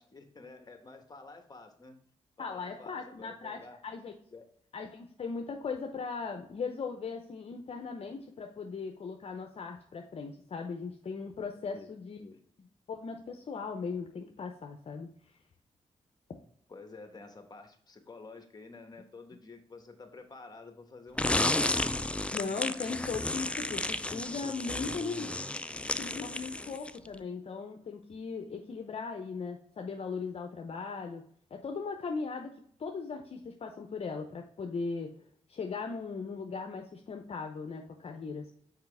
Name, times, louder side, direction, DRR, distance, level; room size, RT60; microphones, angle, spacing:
voice 1, 0.0-2.0 2.4-3.8 4.3-4.5 11.7-11.9 12.2-12.4 16.7-21.7, left 3 dB, 35° left, 6 dB, 1.2 m, -50 dB
voice 2, 2.4-4.1 4.7-12.2 12.9-15.1 22.3-25.3 26.0-32.5 32.8-35.1 35.5-38.5, left 4 dB, 55° left, 3 dB, 0.7 m, -38 dB
sound 1, 21.2-27.1, left 2 dB, 10° left, 0.3 m, -32 dB
5.8 x 4.9 x 3.3 m, 0.64 s
cardioid pair, 65°, 12 cm